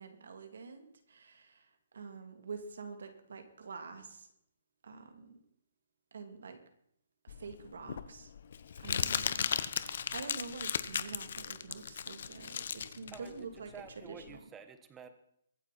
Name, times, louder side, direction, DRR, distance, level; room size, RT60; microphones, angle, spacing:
voice 1, 0.0-4.3 4.8-5.4 6.1-6.6 7.2-8.3 8.8-13.7 14.0-14.4, right 5 dB, 75° right, 6 dB, 2.8 m, -47 dB
Crumpling crinkling, 7.3-14.4, left 7 dB, 55° left, 0.9 m, -36 dB
voice 2, 13.1-13.5 13.7-15.1, right 6 dB, 10° right, 9 dB, 1.2 m, -51 dB
23.5 x 9.4 x 4.3 m, 0.73 s
hypercardioid pair, 165°, 0 cm